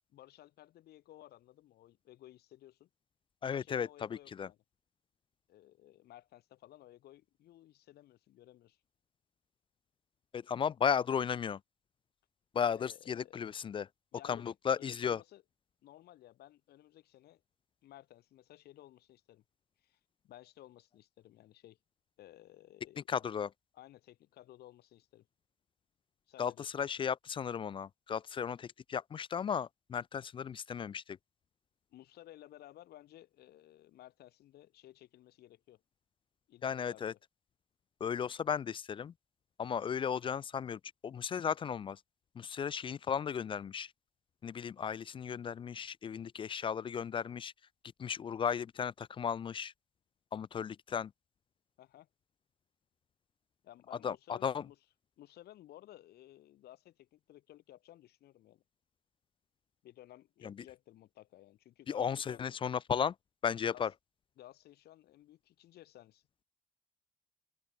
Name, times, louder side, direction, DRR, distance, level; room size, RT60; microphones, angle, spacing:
voice 1, 0.1-2.9 3.4-4.6 5.5-8.8 12.8-13.5 14.1-14.5 14.8-15.4 15.8-17.4 17.8-19.4 19.8-20.0 20.2-21.8 22.2-23.2 23.7-25.3 26.3-26.9 31.9-35.8 36.5-37.2 51.8-52.1 53.6-54.8 55.2-58.6 59.8-62.4 63.6-63.9 64.4-66.2, left 14 dB, 70° left, 5.2 m, -56 dB
voice 2, 3.4-4.5 10.3-11.6 12.5-13.9 14.2-15.2 23.1-23.5 26.4-31.2 36.6-37.1 38.0-39.1 39.6-42.0 42.4-43.9 44.4-47.5 48.0-49.7 50.3-51.1 54.0-54.6 60.4-60.5 61.9-63.1 63.4-63.9, left 7 dB, 30° left, 0.4 m, -35 dB
cardioid pair, 110°, 17 cm